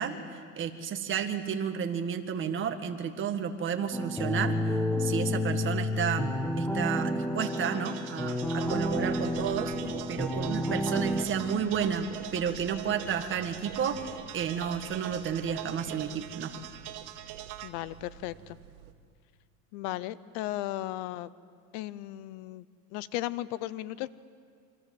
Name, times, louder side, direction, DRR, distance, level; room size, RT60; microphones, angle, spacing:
voice 1, 0.0-4.6 5.0-9.7 10.1-16.5, right 7 dB, 30° right, 6 dB, 1.9 m, -32 dB
sound 1, 3.9-11.2, left 1 dB, 5° left, 1.2 m, -30 dB
sound 2, 7.4-17.7, right 13 dB, 45° right, 1.5 m, -43 dB
sound 3, 8.5-18.9, right 9 dB, 90° right, 2.2 m, -45 dB
voice 2, 17.6-18.6 19.7-21.3 21.7-22.7 22.9-24.1, left 15 dB, 65° left, 18 dB, 0.8 m, -36 dB
28.0 x 25.5 x 7.9 m, 2.1 s
cardioid pair, 150°, 42 cm